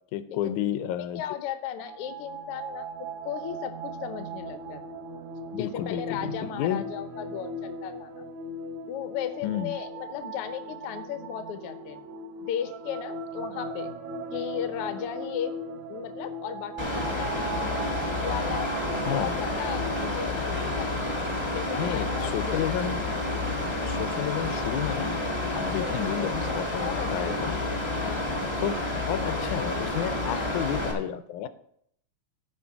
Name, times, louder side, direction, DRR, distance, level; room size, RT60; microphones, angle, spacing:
voice 1, 0.1-1.2 5.5-6.8 9.4-9.7 19.1-19.4 21.8-23.0 23.9-25.2 25.5-27.6 28.6-28.8 29.1-31.5, left 11 dB, 90° left, 12 dB, 2.1 m, -31 dB
voice 2, 1.0-4.8 5.5-8.2 8.9-12.0 12.4-13.9 14.3-15.5 15.9-17.6 18.2-18.7 19.0-21.0 21.5-22.7 25.8-26.1 26.7-28.5 30.1-30.6, left 10 dB, 70° left, 9 dB, 1.4 m, -36 dB
sound 1, 1.7-20.1, right 2 dB, 70° right, 1.4 m, -38 dB
Mechanical fan, 16.8-30.9, left 2 dB, 20° left, 0.8 m, -29 dB
14.0 x 5.0 x 5.8 m, 0.70 s
omnidirectional pair, 3.5 m